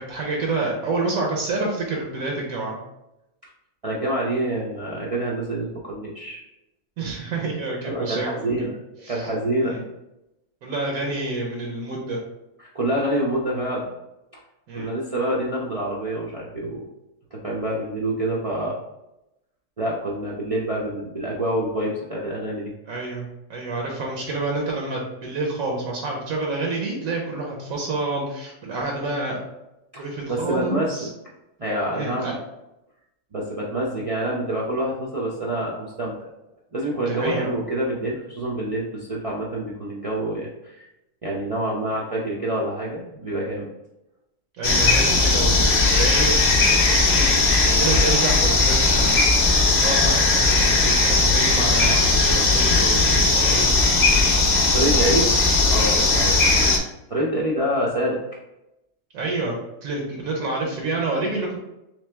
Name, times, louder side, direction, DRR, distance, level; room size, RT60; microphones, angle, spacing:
voice 1, 0.0-2.8 7.0-8.7 9.0-9.3 9.7-9.8 10.6-12.2 14.7-14.9 22.9-23.2 23.5-29.5 30.0-31.1 31.9-32.3 37.1-37.6 44.6-49.2 49.5-53.7 56.1-56.3 59.1-59.6 59.8-61.6, right 3 dB, 85° right, -1 dB, 1.2 m, -28 dB
voice 2, 3.8-6.4 7.8-8.7 9.1-9.7 12.6-13.9 14.7-16.9 17.3-18.8 19.8-22.7 29.9-31.1 31.6-32.3 33.3-36.2 36.7-40.9 41.2-43.7 54.7-55.3 55.7-56.4 57.1-58.2, right 1 dB, 55° right, -5 dB, 0.4 m, -26 dB
sound 1, 44.6-56.8, left 3 dB, 50° left, 0.7 m, -18 dB
3.3 x 3.2 x 3.3 m, 0.90 s
omnidirectional pair, 1.4 m